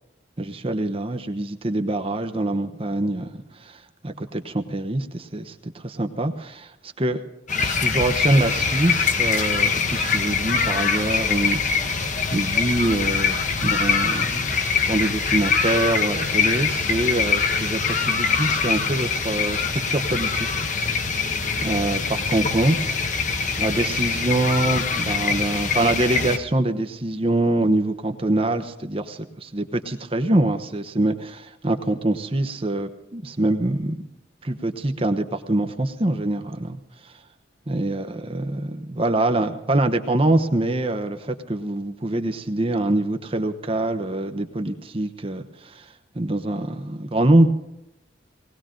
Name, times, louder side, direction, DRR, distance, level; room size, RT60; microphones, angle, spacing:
voice 1, 0.4-6.7 7.0-7.2 7.6-14.5 14.9-21.2 21.6-22.8 23.6-34.1 34.4-36.8 37.7-45.9 46.1-47.5, right 1 dB, 30° right, 7 dB, 1.0 m, -24 dB
sound 1, 7.5-26.4, left 5 dB, 40° left, 1.3 m, -23 dB
19.5 x 18.0 x 3.8 m, 0.89 s
head